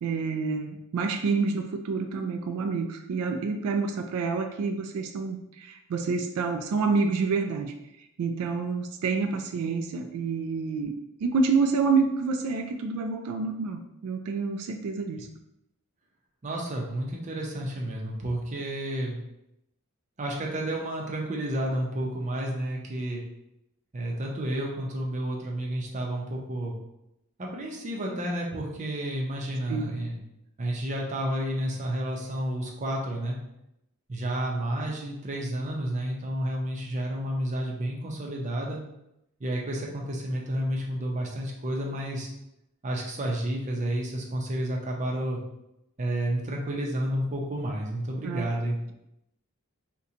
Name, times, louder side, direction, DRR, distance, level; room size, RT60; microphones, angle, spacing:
voice 1, 0.0-7.7 8.2-10.9 11.2-15.3 29.7-30.0 48.2-48.5, right 4 dB, 85° right, 5 dB, 0.3 m, -28 dB
voice 2, 16.4-19.2 20.2-23.2 23.9-26.7 27.4-30.2 30.6-33.4 34.1-38.8 39.4-42.3 42.8-45.4 46.0-48.8, right 1 dB, 35° right, -1 dB, 0.5 m, -31 dB
2.8 x 2.2 x 3.7 m, 0.84 s
head